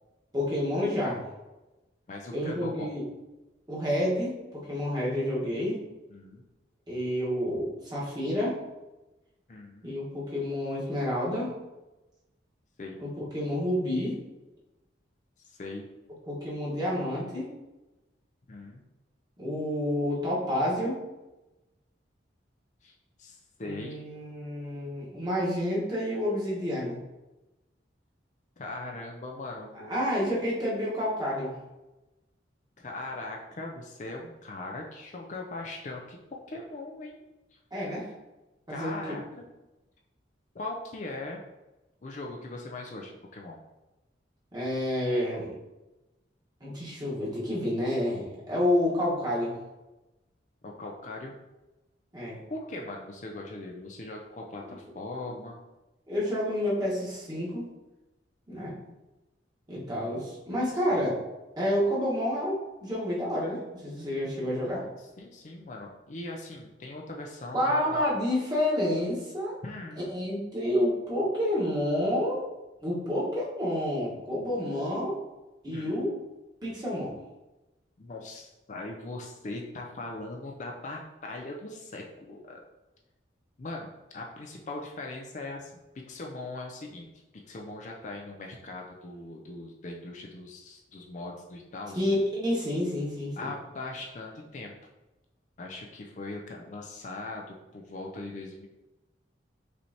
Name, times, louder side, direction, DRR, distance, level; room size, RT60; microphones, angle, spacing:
voice 1, 0.3-1.2 2.3-3.0 3.7-5.8 6.9-8.6 9.8-11.5 13.0-14.2 16.3-17.5 19.4-21.0 23.6-27.0 29.7-31.5 37.7-38.1 38.7-39.0 44.5-45.5 46.6-49.6 52.1-52.4 54.6-54.8 55.2-55.4 56.1-57.7 58.5-58.7 59.7-61.2 61.6-64.8 67.5-69.6 70.1-72.4 72.8-75.2 75.6-76.2 76.6-77.1 91.9-93.5, left 1 dB, 20° right, -6 dB, 1.3 m, -29 dB
voice 2, 2.1-2.9 6.1-6.4 9.5-10.0 12.8-13.0 15.5-15.9 18.5-18.8 22.8-24.0 28.6-30.1 32.8-36.2 36.5-37.2 37.5-37.6 38.7-39.2 40.5-41.4 42.0-43.6 50.6-51.4 52.5-55.6 58.5-58.9 60.9-61.0 65.0-68.0 69.6-70.1 75.7-76.1 78.0-82.6 83.6-85.8 86.1-87.1 87.5-92.0 93.4-94.7 95.6-98.7, left 2 dB, 40° left, 0 dB, 0.4 m, -40 dB
5.3 x 3.2 x 2.8 m, 1.0 s
head